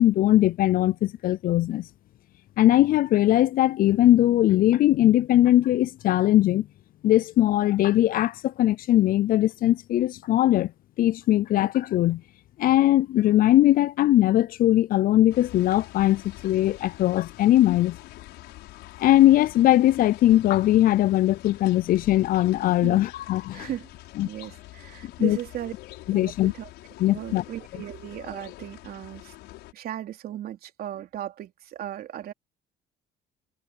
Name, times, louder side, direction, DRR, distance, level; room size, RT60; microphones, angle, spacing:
voice 1, 0.0-1.8 2.6-6.6 7.0-10.7 11.0-12.2 12.6-18.0 19.0-23.7 24.2-24.3 25.0-25.4 26.1-26.5 27.0-27.4, left 14 dB, 55° left, 0.4 m, -20 dB
sound 1, 15.3-29.7, left 17 dB, 90° left, 7.0 m, -46 dB
voice 2, 23.5-23.9 24.2-25.7 26.1-26.7 27.1-29.3 29.7-32.3, right 12 dB, 65° right, 3.3 m, -36 dB
cardioid pair, 110°, 17 cm